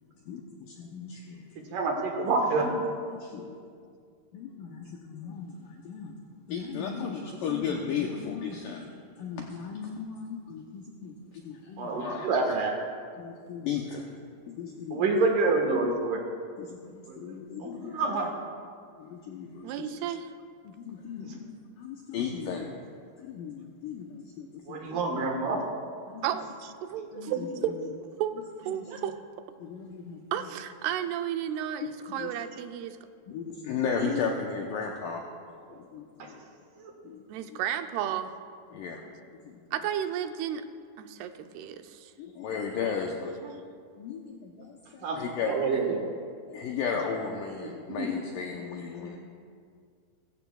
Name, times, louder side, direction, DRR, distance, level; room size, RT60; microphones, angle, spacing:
voice 1, 0.8-1.5 3.1-3.5 4.3-4.7 5.1-6.2 6.5-8.9 9.2-12.3 13.2-14.1 14.5-15.1 16.6-18.0 19.0-19.9 20.6-22.8 23.2-24.9 26.1-26.4 27.1-27.5 27.8-27.9 28.6-29.2 29.6-30.5 31.8-32.3 33.3-35.2 35.7-36.4 37.0-37.2 37.5-37.6 38.7-39.0 39.4-39.6 42.2-43.4 44.0-45.8 46.5-49.2, left 6 dB, 75° left, 1 dB, 2.1 m, -35 dB
voice 2, 1.6-2.9 7.7-7.9 8.7-8.8 11.8-12.7 14.9-16.2 17.1-17.3 17.6-18.4 21.2-21.3 24.7-25.6 27.3-27.4 34.0-34.1 35.7-35.8 36.8-36.9 43.4-43.5 45.0-46.1 47.6-48.1, right 3 dB, 65° right, 1 dB, 2.7 m, -28 dB
voice 3, 19.6-20.3 26.2-27.9 28.2-28.4 28.7-29.1 30.3-33.0 37.3-38.3 39.7-40.6 41.0-42.1, right 10 dB, 85° right, 8 dB, 2.7 m, -33 dB
22.0 x 15.0 x 2.3 m, 2.2 s
omnidirectional pair, 4.6 m